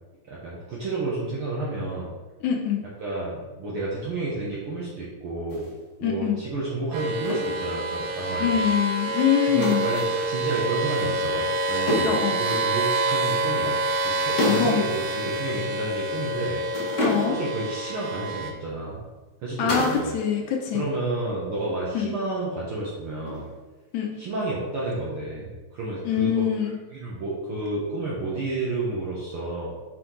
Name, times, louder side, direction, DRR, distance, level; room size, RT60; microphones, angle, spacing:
voice 1, 0.3-2.1 3.0-5.7 6.0-8.7 9.5-16.6 17.3-19.0 19.4-20.2 20.7-23.4 24.2-26.4 26.9-29.7, right 2 dB, 65° right, -6 dB, 1.4 m, -31 dB
voice 2, 2.4-2.8 6.0-6.4 8.4-9.9 12.0-12.4 14.4-14.8 17.0-17.4 19.6-20.8 21.9-22.2 23.9-24.1 26.1-26.8, left 8 dB, 75° left, 1 dB, 1.9 m, -24 dB
sound 1, 5.5-5.7 7.2-7.6 9.6-10.2 11.9-12.3 14.4-14.8 15.1-15.2 16.7-17.5 19.7-20.1 20.4-20.9 23.3-23.7, left 1 dB, 45° left, 0.9 m, -28 dB
sound 2, 6.9-18.5, right 2 dB, 85° right, 2.2 m, -27 dB
5.9 x 4.9 x 3.8 m, 1.2 s
omnidirectional pair, 3.7 m